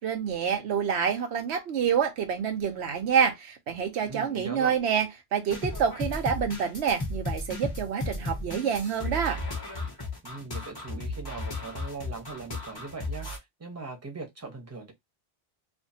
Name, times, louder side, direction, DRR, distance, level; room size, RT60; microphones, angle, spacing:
voice 1, 0.0-9.4, right 7 dB, 90° right, 1.0 m, -27 dB
voice 2, 4.1-4.8 10.2-14.9, right 3 dB, 15° right, 0.8 m, -40 dB
sound 1, 5.5-13.4, left 2 dB, 25° left, 0.9 m, -34 dB
2.6 x 2.5 x 2.6 m
omnidirectional pair, 1.1 m